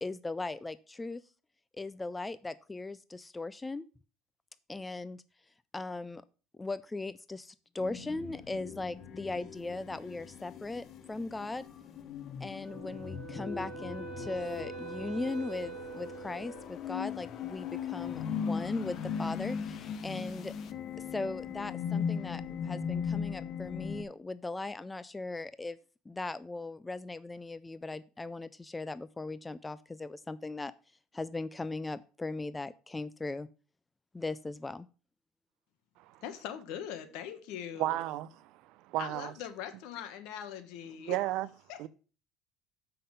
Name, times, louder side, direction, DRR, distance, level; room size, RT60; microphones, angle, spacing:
voice 1, 0.0-1.2 1.7-3.9 4.7-5.2 5.7-6.2 6.5-11.7 12.4-20.5 21.1-25.8 26.1-30.7 31.1-33.5 34.1-34.9, left 2 dB, 10° left, 0.3 m, -38 dB
sound 1, 7.8-24.0, left 7 dB, 45° left, 0.8 m, -38 dB
Wind instrument woodwind instrument, 12.6-16.7, right 9 dB, 35° right, 4.2 m, -45 dB
voice 2, 36.2-38.0 39.0-41.2 41.7-41.9, left 9 dB, 70° left, 1.3 m, -41 dB
voice 3, 37.8-38.5 38.9-39.3 41.1-41.5 41.8-41.9, right 15 dB, 65° right, 0.5 m, -32 dB
7.4 x 5.6 x 5.4 m
cardioid pair, 135°, 0 cm